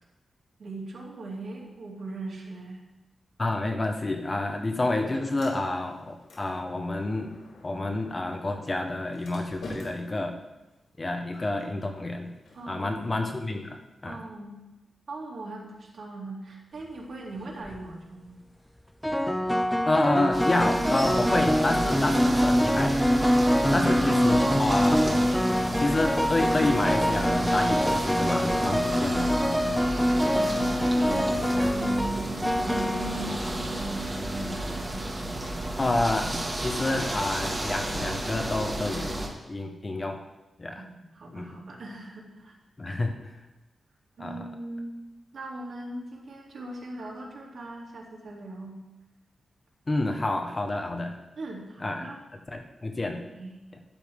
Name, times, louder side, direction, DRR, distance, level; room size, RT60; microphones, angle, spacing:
voice 1, 0.6-2.8 12.5-13.3 14.0-14.6 15.1-18.4 23.6-24.4 30.2-34.1 40.7-42.5 44.2-44.9 45.3-48.8 51.4-52.2 53.3-53.6, right 2 dB, 65° right, -3 dB, 2.9 m, -40 dB
voice 2, 3.4-7.3 7.6-10.4 11.0-12.3 12.7-14.2 19.9-23.0 23.7-25.4 25.8-29.3 29.8-29.9 35.8-39.2 39.5-40.2 40.6-40.8 41.3-41.5 42.8-43.4 44.2-44.4 49.9-51.2 51.8-52.0 52.5-53.2, left 2 dB, 25° left, 4 dB, 0.9 m, -29 dB
Sliding door, 4.1-14.0, left 1 dB, 85° left, 4.3 m, -49 dB
sound 1, 17.4-17.8 19.0-33.9, equal, 5° left, 0.5 m, -25 dB
sound 2, 20.3-39.3, right 1 dB, 20° right, 1.6 m, -31 dB
12.0 x 10.5 x 3.6 m, 1.0 s
wide cardioid pair, 170°, 0 cm